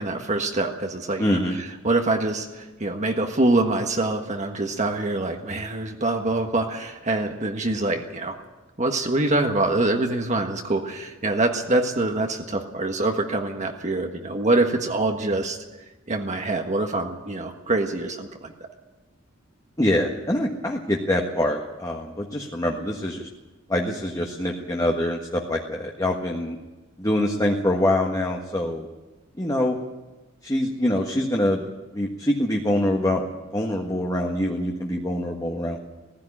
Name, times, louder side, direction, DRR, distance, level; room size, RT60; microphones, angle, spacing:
voice 1, 0.0-8.4 8.8-15.6 16.1-18.5, right 2 dB, 40° right, 3 dB, 1.5 m, -25 dB
voice 2, 1.2-1.5 19.8-23.3 23.7-26.6 27.0-28.9 29.4-29.8 30.4-31.7 31.9-33.2 33.5-35.8, left 1 dB, 20° left, 0 dB, 1.6 m, -24 dB
17.0 x 15.5 x 10.0 m, 1.2 s
head